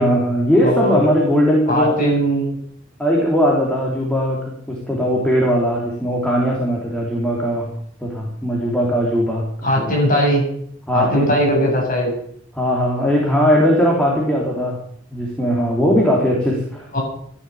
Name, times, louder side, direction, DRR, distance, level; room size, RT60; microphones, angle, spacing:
voice 1, 0.0-2.1 3.0-7.7 8.0-9.4 9.8-9.9 10.9-11.3 12.5-14.8 15.1-16.9, equal, 5° left, -3 dB, 3.4 m, -19 dB
voice 2, 0.6-1.0 1.7-2.5 9.6-10.4 10.9-12.1 16.9-17.0, equal, 45° left, 0 dB, 7.9 m, -18 dB
14.5 x 11.0 x 7.4 m, 0.65 s
head